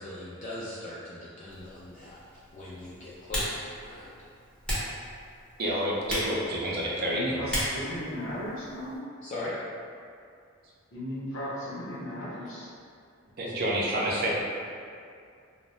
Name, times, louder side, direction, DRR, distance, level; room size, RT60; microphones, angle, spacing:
voice 1, 0.0-2.2 2.5-4.2 9.2-9.6, left 1 dB, 40° left, -8 dB, 0.3 m, -40 dB
Typing, 1.5-9.0, equal, 5° left, 0.6 m, -37 dB
voice 2, 5.6-7.5 13.4-14.4, equal, 50° right, -5 dB, 0.5 m, -29 dB
voice 3, 7.1-9.0 10.9-12.7, equal, 70° left, -8 dB, 0.8 m, -36 dB
2.5 x 2.1 x 3.0 m, 2.4 s
head